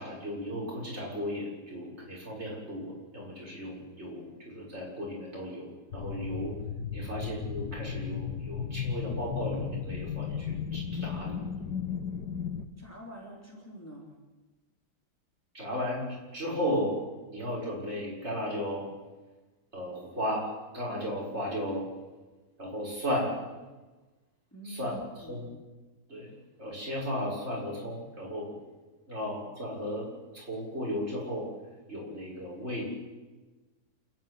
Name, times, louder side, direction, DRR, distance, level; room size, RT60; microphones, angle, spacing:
voice 1, 0.0-6.6 6.9-11.3 15.5-17.0 17.3-18.9 19.7-20.5 20.7-21.9 22.6-23.3 24.7-24.9 25.3-25.5 26.1-26.3 26.6-28.5 29.1-30.1 30.3-31.5 31.9-32.9, equal, 40° right, -4 dB, 6.9 m, -35 dB
sound 1, 5.9-12.7, left 7 dB, 90° left, 1.8 m, -35 dB
voice 2, 12.8-14.1 24.5-25.4, right 1 dB, 10° left, -2 dB, 3.6 m, -46 dB
29.0 x 10.5 x 9.8 m, 1.2 s
omnidirectional pair, 1.7 m